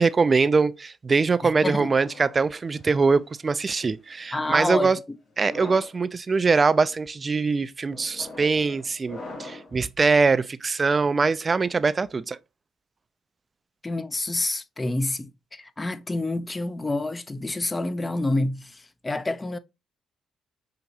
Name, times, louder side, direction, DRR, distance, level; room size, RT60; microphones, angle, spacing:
voice 1, 0.0-5.0 5.4-12.4, right 4 dB, 35° right, 0.3 m, -22 dB
voice 2, 1.4-1.9 4.3-4.9 13.8-19.6, left 2 dB, 20° left, 0.5 m, -28 dB
sound 1, 1.9-3.3 4.1-4.5 5.3-6.0 6.6-7.0 7.9-9.8, left 2 dB, 50° left, 1.9 m, -43 dB
5.8 x 2.9 x 2.7 m
supercardioid pair, 70°, 0 cm